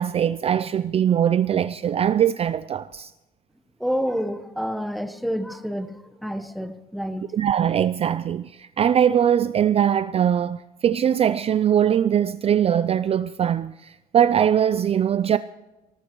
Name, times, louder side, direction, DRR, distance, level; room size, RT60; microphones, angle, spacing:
voice 1, 0.0-3.1 7.3-15.4, right 9 dB, 35° right, 0.4 m, -21 dB
voice 2, 3.8-7.2, equal, ahead, 1.1 m, -28 dB
19.0 x 18.5 x 3.1 m
cardioid pair, 110°, 17 cm